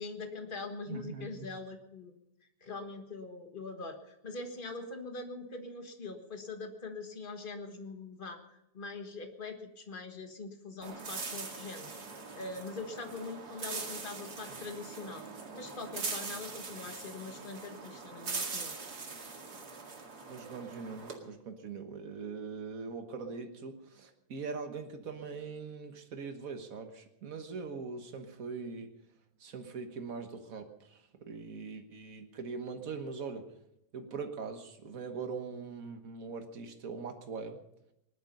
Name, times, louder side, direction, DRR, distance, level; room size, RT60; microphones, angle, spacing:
voice 1, 0.0-2.2 2.6-15.2 15.5-18.7, left 3 dB, 50° left, 5 dB, 0.6 m, -43 dB
voice 2, 0.9-1.5 20.3-28.9 29.4-33.5 33.9-37.6, right 5 dB, 75° right, 5 dB, 0.7 m, -42 dB
sound 1, 10.8-21.2, right 4 dB, 35° right, 2.3 m, -42 dB
20.0 x 12.0 x 5.4 m, 0.83 s
omnidirectional pair, 3.5 m